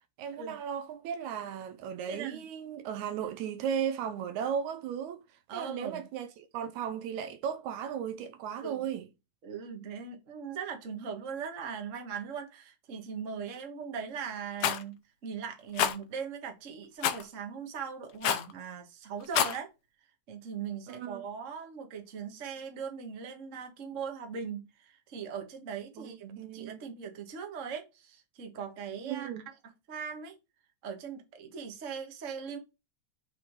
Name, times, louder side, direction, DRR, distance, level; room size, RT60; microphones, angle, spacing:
voice 1, 0.2-5.2 5.5-9.1 20.9-21.2 26.0-26.8 29.0-29.4, right 8 dB, 80° right, 2.0 m, -36 dB
voice 2, 2.1-2.4 5.5-6.1 8.6-8.9 9.4-19.7 20.3-29.3 29.9-30.3 30.8-32.6, right 6 dB, 45° right, 1.0 m, -40 dB
Rattle, 14.6-14.8 15.8-16.0 17.0-17.2 18.2-18.5 19.2-19.6, left 10 dB, 85° left, 1.3 m, -27 dB
6.8 x 3.8 x 4.7 m
omnidirectional pair, 3.6 m